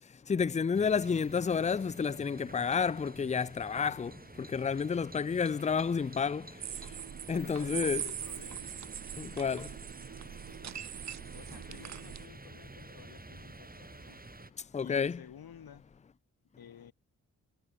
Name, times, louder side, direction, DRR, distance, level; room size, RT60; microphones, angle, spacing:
voice 1, 0.3-4.1 4.4-6.5 7.3-8.1 9.2-9.7 14.7-15.2, left 6 dB, 20° left, 0.5 m, -30 dB
sound 1, 0.7-14.5, right 2 dB, 25° right, 4.3 m, -50 dB
sound 2, 3.5-16.0, left 6 dB, 55° left, 2.9 m, -66 dB
sound 3, 6.6-12.3, right 9 dB, 50° right, 0.7 m, -41 dB
voice 2, 7.3-8.8 11.3-14.2 14.8-15.8 16.6-16.9, left 8 dB, 75° left, 4.4 m, -52 dB
cardioid pair, 55°, 36 cm